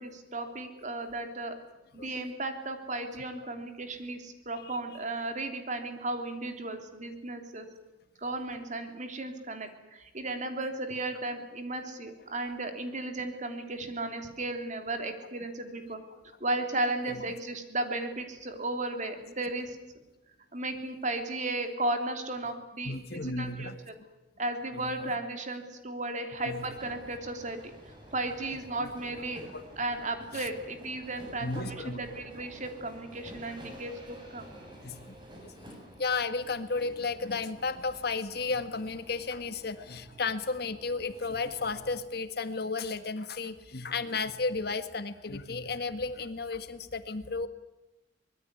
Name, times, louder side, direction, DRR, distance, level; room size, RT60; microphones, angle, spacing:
voice 1, 0.0-1.6 1.9-7.7 8.2-16.0 16.4-19.8 20.5-23.0 23.2-23.9 24.4-27.6 28.1-29.4 29.8-34.5, right 2 dB, 45° right, 6 dB, 3.2 m, -35 dB
voice 2, 22.8-23.8 24.7-24.9 26.4-26.6 28.8-28.9 29.5-29.6 30.3-30.5 31.4-32.0 34.8-35.0 36.0-47.5, left 4 dB, 60° left, 10 dB, 1.6 m, -33 dB
sound 1, 26.6-42.0, equal, 25° right, 7.3 m, -51 dB
24.5 x 20.5 x 9.7 m, 0.97 s
head